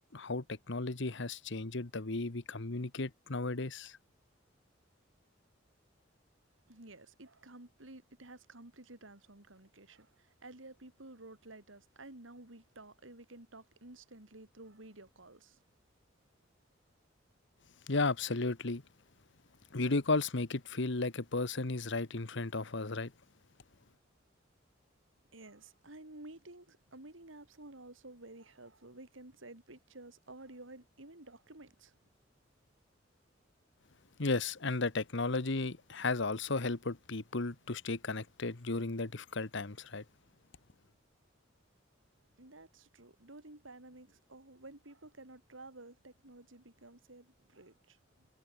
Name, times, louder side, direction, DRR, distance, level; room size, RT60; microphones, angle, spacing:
voice 1, 0.0-4.0 17.9-18.8 19.7-23.1 34.2-40.0, left 3 dB, 70° left, 1.3 m, -34 dB
voice 2, 6.7-15.6 25.3-31.9 42.4-48.3, right 2 dB, 80° right, 3.4 m, -53 dB
head